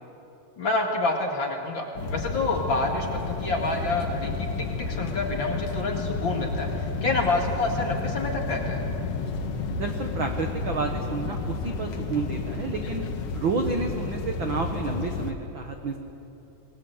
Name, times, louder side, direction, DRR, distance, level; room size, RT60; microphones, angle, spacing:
voice 1, 0.6-4.5 4.8-8.8, left 2 dB, 40° left, 1 dB, 2.3 m, -28 dB
sound 1, 2.0-15.3, left 4 dB, 55° left, 1.9 m, -31 dB
voice 2, 9.8-13.0 13.3-16.0, right 4 dB, 60° right, 4 dB, 1.3 m, -30 dB
28.5 x 20.0 x 8.0 m, 3.0 s
omnidirectional pair, 4.1 m